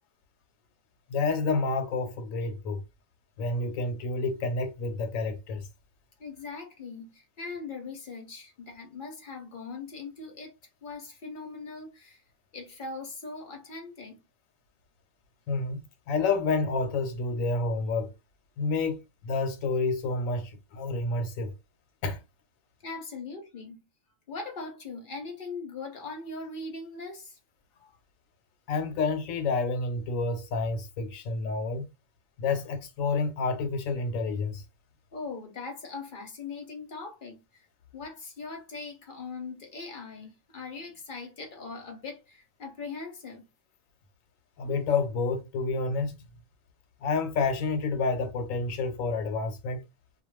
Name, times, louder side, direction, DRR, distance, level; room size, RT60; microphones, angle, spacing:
voice 1, 1.1-2.8 3.4-5.7 15.5-18.1 18.6-21.5 22.0-22.2 28.7-31.9 32.4-34.6 44.6-46.1 47.0-49.8, left 3 dB, 80° left, 1.0 m, -29 dB
voice 2, 6.2-10.5 10.8-12.2 12.5-14.2 22.8-23.8 24.3-27.4 35.1-37.7 37.9-43.4, left 4 dB, 50° left, 0.7 m, -40 dB
2.4 x 2.2 x 3.0 m
omnidirectional pair, 1.4 m